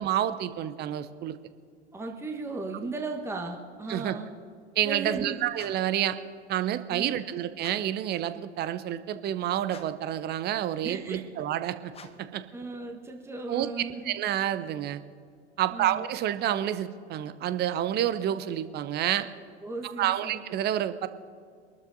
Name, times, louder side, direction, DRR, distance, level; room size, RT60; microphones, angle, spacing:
voice 1, 0.0-1.4 3.9-4.1 4.8-6.2 6.5-11.9 12.3-12.4 13.5-13.7 14.0-15.0 15.6-19.3 19.8-21.1, right 11 dB, 30° right, 12 dB, 0.7 m, -29 dB
voice 2, 1.9-4.3 4.8-5.5 6.9-7.2 10.8-11.2 12.5-14.1 15.7-16.1 19.6-20.4, right 3 dB, 5° right, 2 dB, 1.2 m, -36 dB
sound 1, 5.5-6.0 7.5-8.0 9.6-10.1 11.9-12.4, left 5 dB, 15° left, 0.9 m, -50 dB
25.5 x 12.5 x 2.7 m, 2.1 s
figure-of-eight pair, 80°, 34 cm